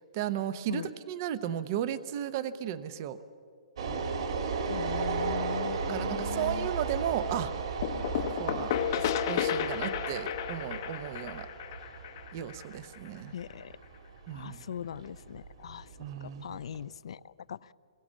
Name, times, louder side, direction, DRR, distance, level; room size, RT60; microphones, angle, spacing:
voice 1, 0.1-3.2 5.9-7.5 8.3-11.5 12.3-13.3 14.3-14.6 16.0-16.6, right 10 dB, 25° right, 14 dB, 0.7 m, -35 dB
sound 1, 3.8-16.8, right 5 dB, 50° right, 2.9 m, -35 dB
voice 2, 4.7-6.7 13.3-13.7 14.3-15.9 16.2-17.7, left 9 dB, 55° left, 19 dB, 0.5 m, -40 dB
sound 2, 7.8-13.4, left 9 dB, 35° left, 0.8 m, -32 dB
25.0 x 21.5 x 7.3 m, 2.4 s
hypercardioid pair, 175°, 4 cm